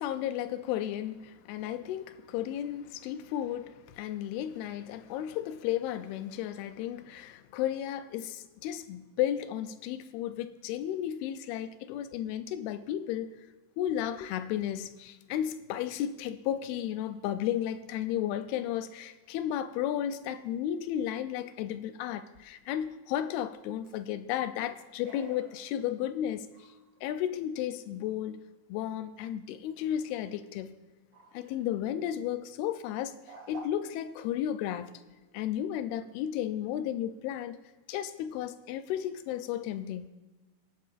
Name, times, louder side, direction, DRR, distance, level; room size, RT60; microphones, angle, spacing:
voice 1, 0.0-13.3 13.8-26.5 27.0-28.4 28.7-30.8 31.3-33.1 33.5-35.0 35.3-37.6 37.9-40.1, left 11 dB, 90° left, 11 dB, 2.6 m, -33 dB
sound 1, 19.0-20.2 21.3-21.7 23.6-24.1 25.0-26.1 26.5-27.0 27.6-27.8 29.8-30.4 31.1-31.8 32.1-32.4 33.2-33.6, right 3 dB, 85° right, 4.7 m, -55 dB
24.5 x 9.3 x 2.5 m, 1.2 s
omnidirectional pair, 4.4 m